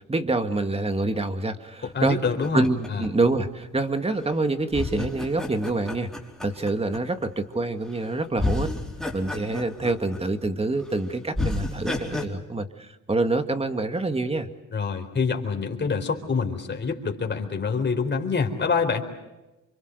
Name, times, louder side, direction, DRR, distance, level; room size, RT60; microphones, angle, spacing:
voice 1, 0.0-2.2 2.5-6.1 6.4-8.7 9.1-14.5, right 2 dB, 20° right, 7 dB, 2.1 m, -26 dB
sound 1, 1.8-3.8 4.7-7.3 7.9-8.1 8.4-10.5 10.8-10.9 11.3-12.3, left 2 dB, ahead, 4.5 m, -31 dB
voice 2, 1.9-3.0 14.7-19.0, left 5 dB, 35° left, 4 dB, 4.2 m, -26 dB
28.0 x 24.5 x 6.7 m, 1.0 s
cardioid pair, 90°, 30 cm